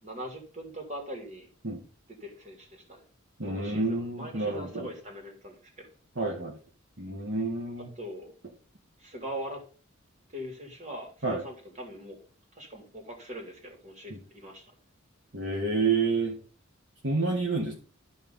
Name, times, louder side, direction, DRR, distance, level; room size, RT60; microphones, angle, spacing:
voice 1, 0.0-1.5 2.1-3.0 3.4-5.9 7.9-8.3 9.0-9.6 10.3-12.2 12.5-14.6, equal, 35° right, 2 dB, 3.1 m, -41 dB
voice 2, 3.4-4.9 6.2-6.5 7.0-7.9 11.2-11.4 15.3-16.4 17.0-17.7, right 3 dB, 60° right, -1 dB, 1.7 m, -29 dB
12.0 x 4.4 x 5.5 m, 0.40 s
head